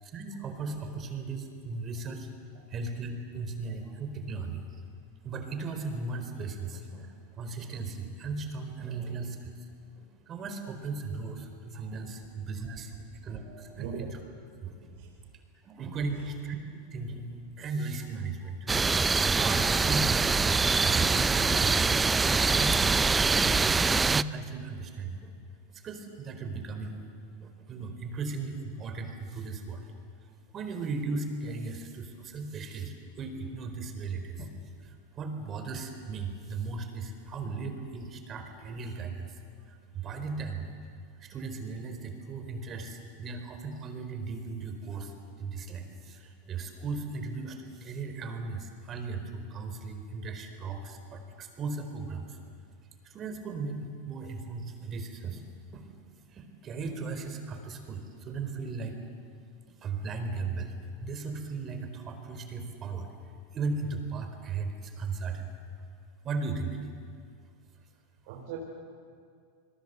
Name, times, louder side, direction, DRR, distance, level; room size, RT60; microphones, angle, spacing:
voice 1, 0.0-2.3 2.7-4.6 5.2-9.5 10.0-12.9 13.2-14.0 14.6-15.0 15.6-17.3 17.6-18.7 19.4-25.3 25.7-27.0 27.4-29.9 30.5-34.5 34.8-40.7 41.2-52.5 53.0-55.4 55.7-55.8 56.3-59.0 59.8-60.7 61.0-65.5 66.2-66.8, right 4 dB, 35° right, 6 dB, 4.2 m, -37 dB
voice 2, 13.4-14.1 15.0-15.1 68.3-68.6, right 8 dB, 65° right, -1 dB, 4.3 m, -40 dB
sound 1, 18.7-24.2, right 4 dB, 15° right, 0.5 m, -24 dB
27.5 x 21.0 x 8.1 m, 2.3 s
hypercardioid pair, 115°, 0 cm